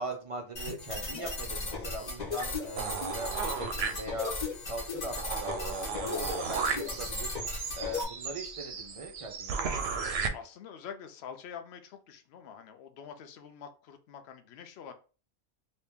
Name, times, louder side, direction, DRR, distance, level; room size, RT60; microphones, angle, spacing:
voice 1, 0.0-4.3 4.6-7.4 7.8-9.9, right 1 dB, 45° right, 4 dB, 0.4 m, -40 dB
sound 1, 0.5-8.0, left 3 dB, 40° left, 1.1 m, -36 dB
sound 2, 2.8-4.4 4.8-4.9 5.2-10.3, right 5 dB, 65° right, 0.8 m, -35 dB
voice 2, 10.3-14.9, left 7 dB, 65° left, 7 dB, 0.8 m, -46 dB
3.0 x 2.8 x 3.5 m, 0.36 s
omnidirectional pair, 1.2 m